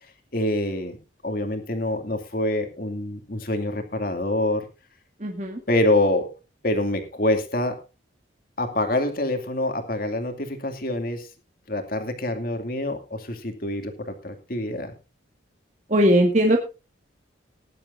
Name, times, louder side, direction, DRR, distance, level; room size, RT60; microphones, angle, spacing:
voice 1, 0.3-1.0 1.2-4.7 5.7-6.3 6.6-7.8 8.6-11.3 11.7-14.9, left 1 dB, 50° left, 6 dB, 2.5 m, -26 dB
voice 2, 5.2-5.6 15.9-16.6, equal, 35° right, 2 dB, 1.9 m, -19 dB
20.0 x 11.0 x 2.6 m, 0.28 s
head